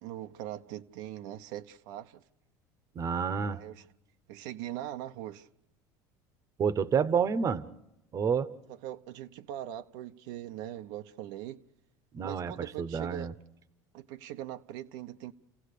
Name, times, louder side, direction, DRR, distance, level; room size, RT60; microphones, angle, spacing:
voice 1, 0.0-2.2 3.5-3.9 4.3-5.5 8.7-11.6 12.2-13.3 13.9-15.3, right 12 dB, 75° right, 0.8 m, -41 dB
voice 2, 2.9-3.6 6.6-7.6 8.1-8.5 12.1-12.5 12.8-13.3, right 6 dB, 35° right, 1.0 m, -28 dB
30.0 x 16.0 x 6.7 m
supercardioid pair, 110°, 10 cm